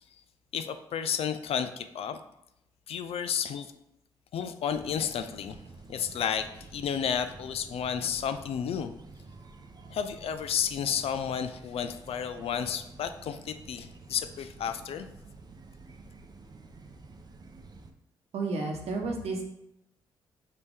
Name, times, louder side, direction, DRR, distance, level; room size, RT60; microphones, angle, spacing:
voice 1, 0.5-2.2 2.9-3.7 4.3-5.6 5.9-8.9 9.9-15.1, left 8 dB, 65° left, 10 dB, 0.4 m, -32 dB
sound 1, 4.7-17.9, right 3 dB, 40° right, 0.6 m, -50 dB
voice 2, 18.3-19.4, right 3 dB, 70° right, 2 dB, 1.0 m, -31 dB
5.2 x 2.8 x 3.3 m, 0.81 s
supercardioid pair, 50°, 11 cm